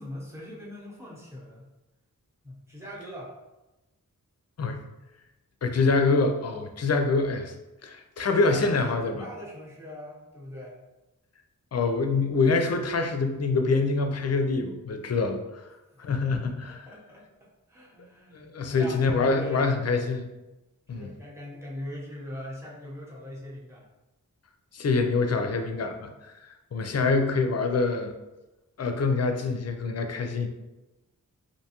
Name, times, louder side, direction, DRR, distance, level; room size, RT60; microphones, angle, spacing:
voice 1, 0.0-1.7 2.4-3.3 8.2-10.8 15.9-16.0 16.6-19.7 20.9-23.8, left 1 dB, 10° right, -5 dB, 0.8 m, -41 dB
voice 2, 5.6-7.5 7.8-9.3 11.7-15.6 16.0-16.9 18.3-20.3 20.9-21.1 24.7-26.3 26.7-28.1 28.8-30.5, left 3 dB, 50° left, 6 dB, 0.4 m, -25 dB
2.7 x 2.2 x 2.9 m, 1.0 s
cardioid pair, 40°, 34 cm